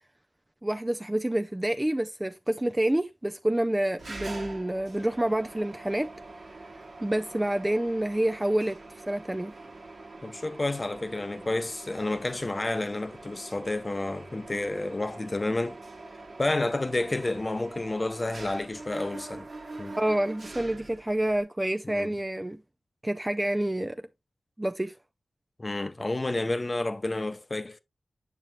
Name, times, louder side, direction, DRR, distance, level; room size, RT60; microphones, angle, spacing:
voice 1, 0.6-6.1 7.0-8.8 9.1-9.5 20.0-22.6 23.0-24.0 24.6-24.9, right 1 dB, 15° right, 0.4 m, -28 dB
Mechanisms, 4.0-21.4, right 2 dB, 60° right, 1.3 m, -44 dB
voice 2, 10.2-15.8 16.4-19.5 19.8-20.0 21.8-22.2 25.6-27.8, left 2 dB, 30° left, 0.7 m, -30 dB
9.0 x 5.7 x 2.3 m
wide cardioid pair, 70°, 0 cm